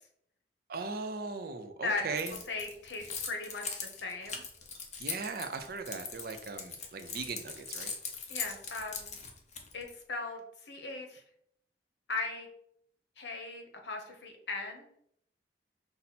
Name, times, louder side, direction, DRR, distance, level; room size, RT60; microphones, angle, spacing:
voice 1, 0.7-2.4 5.0-7.9, right 4 dB, 55° right, 7 dB, 0.5 m, -38 dB
Keys jangling, 2.2-9.9, left 5 dB, 40° left, 0.7 m, -40 dB
voice 2, 2.5-4.4 8.3-9.1 9.7-11.2 12.1-12.5 13.2-14.9, left 3 dB, 75° left, 3 dB, 0.9 m, -38 dB
5.5 x 2.1 x 4.1 m, 0.69 s
head